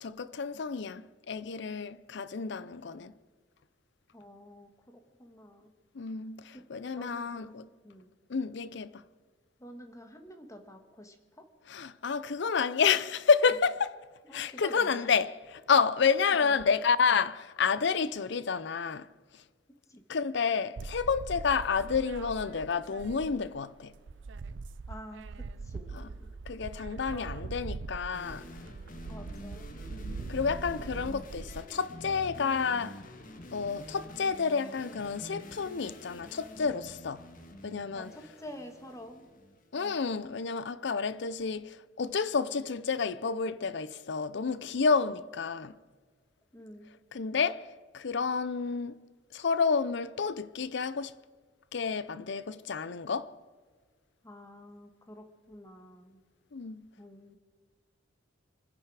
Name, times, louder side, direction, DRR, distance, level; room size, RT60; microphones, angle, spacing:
voice 1, 0.0-3.1 5.9-7.6 8.3-9.0 11.7-14.0 14.3-19.1 20.1-23.9 25.9-26.1 26.5-28.5 29.9-33.0 33.5-37.2 37.6-38.1 39.7-45.7 47.1-49.0 49.3-51.1 51.7-53.3 56.5-56.9, left 5 dB, 65° left, 0.6 m, -30 dB
voice 2, 4.1-5.7 6.5-8.1 9.6-11.5 14.2-15.1 16.1-16.6 19.9-20.0 24.9-26.3 27.1-27.5 28.9-29.7 30.2-30.4 37.9-39.3 39.8-39.9 46.5-46.9 54.2-56.2 57.0-57.4, equal, 15° left, 1.5 m, -49 dB
sound 1, 20.8-23.6 23.9-31.6, right 4 dB, 70° right, 0.5 m, -42 dB
sound 2, 28.1-39.6, left 1 dB, 45° left, 1.5 m, -48 dB
25.0 x 10.5 x 4.8 m
head